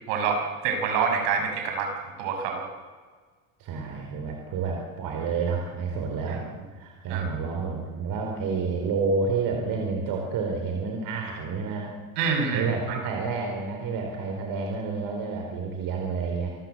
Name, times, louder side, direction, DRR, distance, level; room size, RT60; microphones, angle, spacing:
voice 1, 0.1-1.9 2.2-2.6 6.3-6.4 7.1-7.3 12.2-13.0, right 5 dB, 70° right, 4 dB, 6.1 m, -26 dB
voice 2, 3.6-11.9 12.5-16.5, right 4 dB, 50° right, 1 dB, 4.5 m, -29 dB
26.5 x 14.0 x 8.1 m, 1.5 s
supercardioid pair, 120°, 43 cm